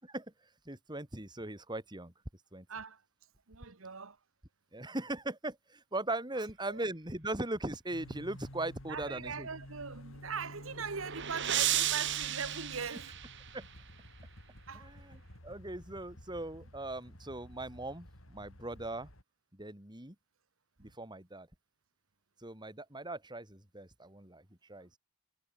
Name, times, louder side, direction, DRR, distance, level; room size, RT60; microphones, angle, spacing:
voice 1, 0.0-2.1 2.5-2.7 4.7-9.5 13.5-13.6 14.7-19.1 19.5-20.2 20.8-21.5 22.4-25.0, right 2 dB, 20° right, 4.0 m, -40 dB
voice 2, 2.7-3.0 3.5-4.2 6.7-6.8 8.9-13.1 14.7-14.9 20.8-20.9, right 5 dB, 75° right, 1.4 m, -41 dB
sound 1, 7.9-19.2, equal, 80° left, 6.9 m, -51 dB
sound 2, 10.4-13.8, right 12 dB, 60° right, 1.9 m, -34 dB
head